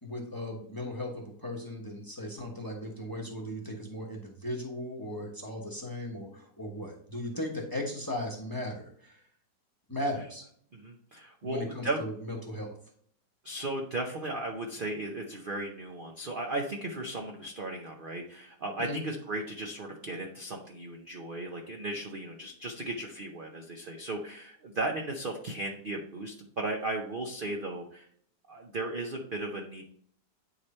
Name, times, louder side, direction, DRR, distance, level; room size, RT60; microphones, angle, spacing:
voice 1, 0.0-9.2 9.9-10.4 11.4-12.8 18.8-19.0, left 1 dB, 15° left, 0 dB, 1.0 m, -37 dB
voice 2, 10.7-12.0 13.4-28.1 28.5-29.8, right 2 dB, 45° right, 1 dB, 0.7 m, -36 dB
9.7 x 3.3 x 4.3 m, 0.63 s
omnidirectional pair, 1.8 m